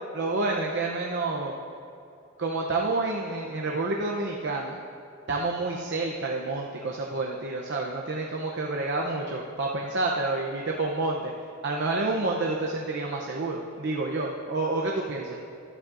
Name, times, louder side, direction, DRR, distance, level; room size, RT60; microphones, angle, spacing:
voice 1, 0.1-1.5 2.4-4.8 5.3-11.2 11.6-15.4, right 2 dB, 55° right, -1 dB, 0.7 m, -29 dB
12.5 x 12.0 x 2.5 m, 2.6 s
head